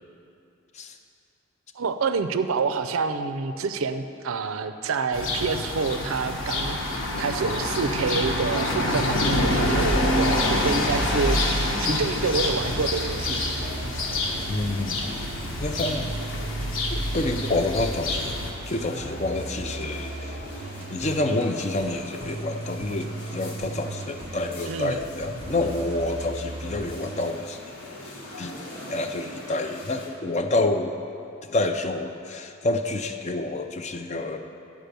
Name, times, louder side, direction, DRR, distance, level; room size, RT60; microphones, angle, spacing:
voice 1, 1.7-11.4 11.8-13.5 24.7-25.0, right 4 dB, 75° right, 9 dB, 0.5 m, -27 dB
sound 1, 5.1-18.5, left 1 dB, 65° left, 1.1 m, -26 dB
sound 2, 10.3-30.1, left 1 dB, 90° left, 1.5 m, -41 dB
sound 3, 11.8-11.9 12.6-27.3, right 3 dB, 25° right, 0.5 m, -38 dB
voice 2, 14.5-15.0 15.6-16.1 16.9-18.4 18.7-20.4 20.9-27.6 28.0-28.6 28.9-31.0 31.4-34.4, left 2 dB, 30° left, 7 dB, 0.4 m, -28 dB
10.5 x 5.0 x 6.7 m, 2.6 s
head